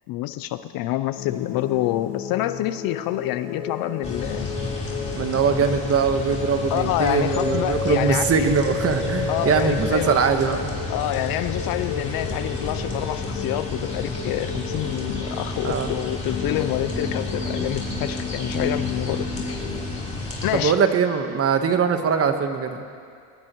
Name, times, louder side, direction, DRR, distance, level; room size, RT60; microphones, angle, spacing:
voice 1, 0.1-4.5 6.7-8.5 9.3-10.2 10.9-19.6 20.4-20.8, left 14 dB, 50° left, 12 dB, 0.5 m, -27 dB
sound 1, 1.1-19.8, left 4 dB, 85° left, 4.7 m, -33 dB
sound 2, 4.0-20.6, left 2 dB, 15° left, 3.9 m, -31 dB
voice 2, 5.1-10.7 15.6-15.9 20.5-22.8, right 6 dB, 30° right, 7 dB, 1.3 m, -22 dB
21.5 x 19.0 x 3.1 m, 2.3 s
supercardioid pair, 115°, 48 cm